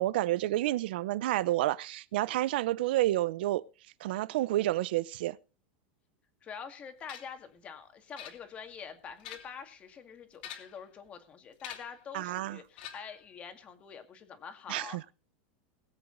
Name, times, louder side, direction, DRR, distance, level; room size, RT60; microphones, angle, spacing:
voice 1, 0.0-3.7 4.0-5.4 12.1-12.6 14.7-15.1, right 15 dB, 70° right, 0.7 m, -29 dB
voice 2, 6.4-15.0, left 6 dB, 20° left, 2.0 m, -46 dB
sound 1, 7.1-7.4 8.2-8.7 9.1-9.7 10.3-10.9 11.6-12.0 12.8-13.3, left 10 dB, 65° left, 3.1 m, -46 dB
21.0 x 8.0 x 4.0 m
supercardioid pair, 165°, 6 cm